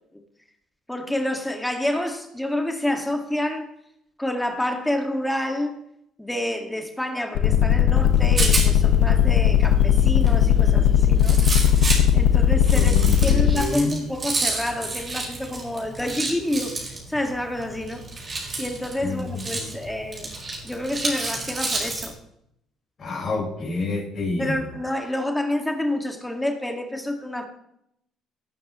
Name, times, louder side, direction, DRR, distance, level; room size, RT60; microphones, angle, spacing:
voice 1, 0.9-3.7 4.2-5.8 6.2-11.4 12.1-16.7 17.1-18.0 18.6-20.3 20.6-22.2 24.4-27.5, left 1 dB, 10° left, 1.8 m, -28 dB
sound 1, 7.4-13.6, left 10 dB, 80° left, 1.0 m, -17 dB
Rattle, 8.0-22.1, right 3 dB, 35° right, 4.9 m, -31 dB
voice 2, 12.7-13.9 19.0-19.7 23.0-24.5, left 3 dB, 40° left, 4.7 m, -28 dB
18.0 x 9.1 x 3.0 m
supercardioid pair, 65°, 0 cm